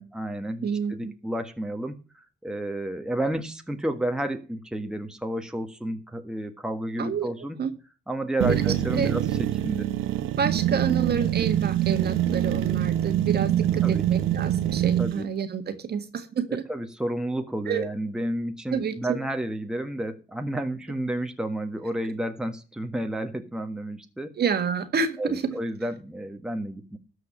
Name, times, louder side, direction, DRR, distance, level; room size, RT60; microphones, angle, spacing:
voice 1, 0.0-7.6 8.1-9.9 13.8-14.0 15.0-15.3 16.7-24.4 25.2-27.0, right 1 dB, 5° right, 5 dB, 1.5 m, -31 dB
voice 2, 0.6-1.1 7.0-7.3 7.6-7.7 8.5-8.6 8.9-9.1 10.4-16.6 17.7-17.8 18.7-19.2 24.4-25.4, right 6 dB, 55° right, 7 dB, 1.8 m, -29 dB
sound 1, 8.4-15.2, right 11 dB, 85° right, 0.8 m, -24 dB
13.0 x 4.9 x 8.6 m, 0.35 s
cardioid pair, 90°, 20 cm